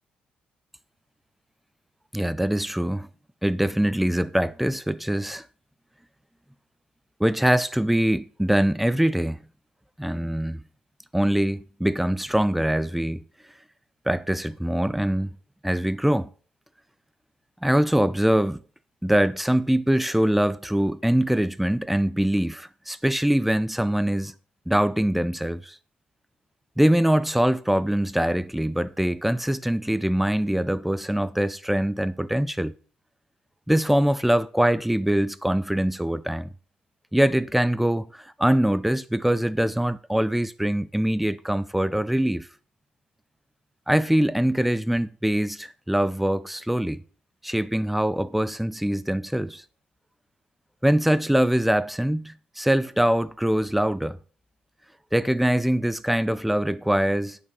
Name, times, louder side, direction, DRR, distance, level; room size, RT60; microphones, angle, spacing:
voice 1, 2.1-3.1 3.4-5.4 7.2-9.4 10.0-10.6 11.1-13.2 14.1-15.4 15.6-16.3 17.6-18.6 19.0-24.3 24.7-25.8 26.8-32.7 33.7-36.5 37.1-42.5 43.9-47.0 47.4-49.6 50.8-54.2 55.1-57.4, right 1 dB, 5° right, 0.5 m, -23 dB
9.6 x 5.7 x 6.0 m
cardioid pair, 90°, 3 cm